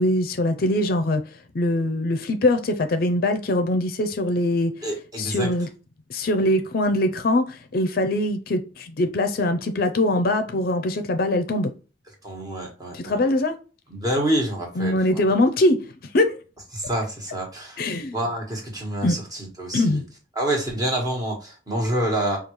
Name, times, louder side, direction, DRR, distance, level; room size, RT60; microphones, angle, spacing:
voice 1, 0.0-4.7 5.2-5.7 6.1-11.7 12.9-13.6 14.8-15.8 16.1-16.4 17.8-18.2 19.0-19.2 19.7-20.0, left 1 dB, 50° left, 0.4 m, -22 dB
voice 2, 4.8-5.5 12.2-13.2 13.9-15.2 16.7-17.8 18.1-20.0 20.4-22.4, right 1 dB, 20° right, 1.2 m, -27 dB
5.1 x 2.3 x 3.0 m
head